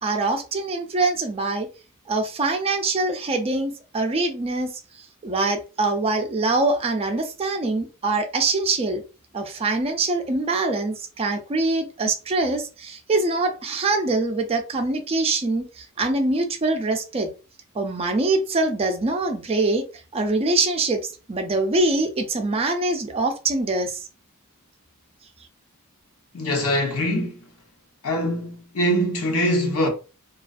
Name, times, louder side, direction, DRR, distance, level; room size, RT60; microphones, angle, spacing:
voice 1, 0.0-1.7 2.1-4.7 5.2-9.0 9.3-17.3 17.8-19.8 20.1-24.0, right 2 dB, 25° right, 0.4 m, -24 dB
voice 2, 26.3-27.5 28.0-29.9, equal, 75° left, 0.8 m, -23 dB
2.4 x 2.3 x 2.4 m
head